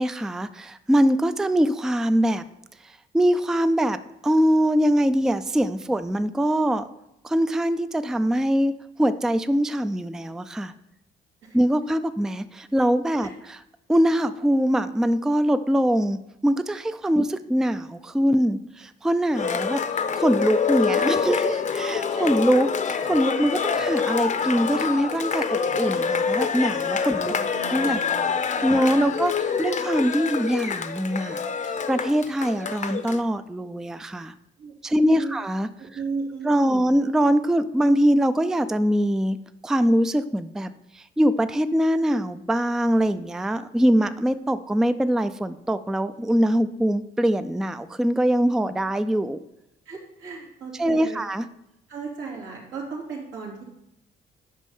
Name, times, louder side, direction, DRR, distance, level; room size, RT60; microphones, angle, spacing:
voice 1, 0.0-2.4 3.1-6.9 7.2-8.7 9.0-10.7 11.5-13.6 13.9-19.8 20.2-27.4 27.7-28.0 28.6-34.3 34.8-35.7 36.4-39.4 39.6-49.4 50.8-51.5, equal, 5° right, 12 dB, 0.4 m, -23 dB
Cheering, 19.3-33.2, left 6 dB, 40° left, 0.7 m, -26 dB
voice 2, 27.2-28.3 28.6-29.1 34.6-35.4 35.8-36.9 49.9-51.2 51.9-53.6, right 4 dB, 85° right, -2 dB, 2.7 m, -36 dB
8.4 x 5.4 x 5.5 m, 0.82 s
cardioid pair, 90°, 20 cm